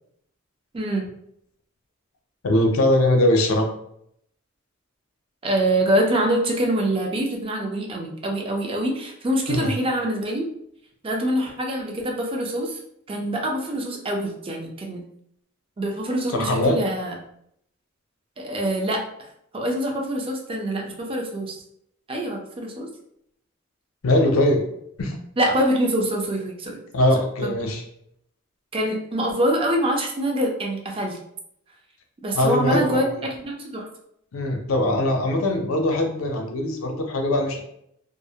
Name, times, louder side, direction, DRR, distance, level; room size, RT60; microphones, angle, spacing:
voice 1, 0.7-1.1 5.4-10.5 11.0-12.8 13.1-15.0 15.8-17.1 18.4-19.3 19.5-21.6 22.1-22.9 25.4-26.8 27.4-27.5 28.7-31.2 32.2-33.9, right 1 dB, 25° right, 1 dB, 0.4 m, -25 dB
voice 2, 2.4-3.7 9.5-9.7 16.3-16.8 24.0-24.6 25.0-25.1 26.9-27.8 32.3-33.0 34.3-37.6, left 1 dB, 90° left, 3 dB, 0.5 m, -21 dB
2.5 x 2.0 x 2.7 m, 0.73 s
head